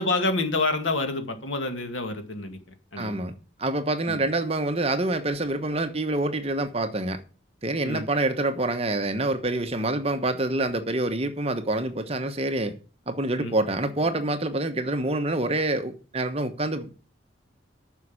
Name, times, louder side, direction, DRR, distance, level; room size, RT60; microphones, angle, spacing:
voice 1, 0.0-2.6 2.9-3.2 4.1-4.2 7.8-8.0 13.4-13.6, left 2 dB, 80° left, 2.1 m, -27 dB
voice 2, 3.0-3.3 3.6-7.2 7.6-12.8 13.1-16.9, right 2 dB, 30° right, 1.1 m, -26 dB
9.4 x 6.3 x 8.3 m
head